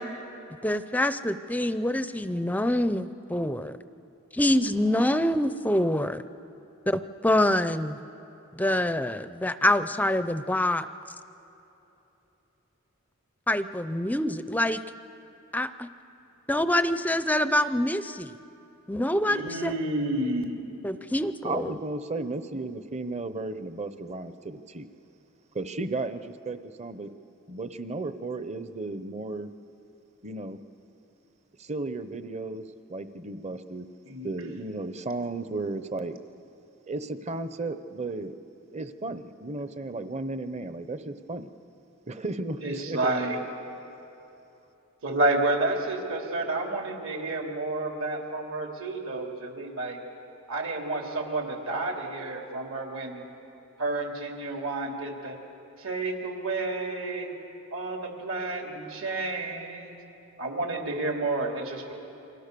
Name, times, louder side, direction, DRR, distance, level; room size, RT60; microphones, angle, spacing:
voice 1, 0.6-3.7 4.3-6.2 6.9-8.0 8.6-10.9 13.5-14.8 15.5-15.9 16.5-18.4 18.9-19.7 20.8-21.7, left 1 dB, 5° left, 12 dB, 0.5 m, -25 dB
voice 2, 19.3-20.6 34.0-34.3 42.6-43.4 45.0-50.0 50.5-53.2 53.8-55.4 55.8-57.3 57.7-60.0 60.4-61.9, right 2 dB, 70° right, 2 dB, 3.1 m, -30 dB
voice 3, 21.4-24.9 25.5-27.1 27.5-29.5 30.2-30.6 31.6-33.9 34.2-36.2 36.9-38.3 38.7-41.5 42.1-43.1, right 2 dB, 30° right, 11 dB, 0.8 m, -34 dB
29.0 x 24.5 x 6.9 m, 3.0 s
head